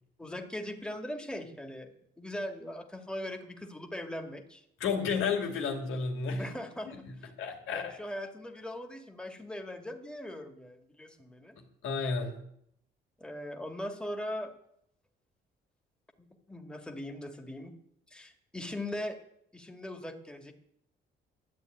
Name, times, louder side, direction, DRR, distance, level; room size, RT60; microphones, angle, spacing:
voice 1, 0.2-1.9 2.2-4.6 6.4-7.3 7.7-11.6 13.2-14.5 16.2-17.7 18.1-19.2 19.5-20.5, left 1 dB, 5° left, 4 dB, 2.1 m, -40 dB
voice 2, 4.8-6.5 6.9-7.1 7.4-8.0 11.6-12.4, left 5 dB, 85° left, 3 dB, 2.8 m, -32 dB
12.5 x 8.8 x 9.3 m, 0.73 s
cardioid pair, 90°, 20 cm